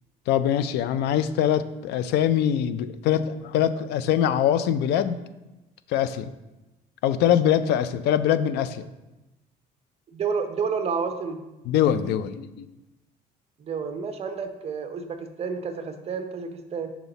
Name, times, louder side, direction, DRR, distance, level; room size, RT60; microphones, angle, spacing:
voice 1, 0.3-5.2 5.9-6.3 7.0-8.9 11.7-12.7, left 10 dB, 80° left, 14 dB, 0.4 m, -23 dB
voice 2, 10.1-11.4 13.6-16.9, right 5 dB, 40° right, 7 dB, 0.6 m, -30 dB
5.8 x 4.1 x 4.0 m, 1.0 s
cardioid pair, 110°, 17 cm